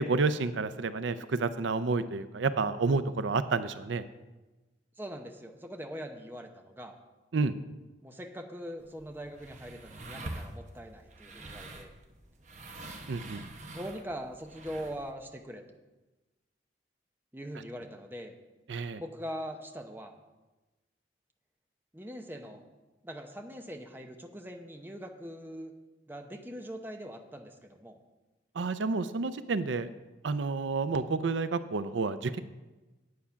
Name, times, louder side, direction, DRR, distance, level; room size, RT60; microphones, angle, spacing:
voice 1, 0.0-4.0 7.3-7.5 13.1-13.4 18.7-19.0 28.5-29.9 30.2-32.4, right 4 dB, 80° right, 13 dB, 0.5 m, -30 dB
voice 2, 5.0-7.0 8.0-11.9 13.7-15.6 17.3-18.3 19.0-20.1 21.9-22.6 23.0-25.7 26.1-28.0, equal, 10° right, 4 dB, 0.8 m, -42 dB
sound 1, 8.8-15.1, right 2 dB, 40° right, 0.9 m, -45 dB
9.5 x 8.5 x 5.8 m, 1.1 s
head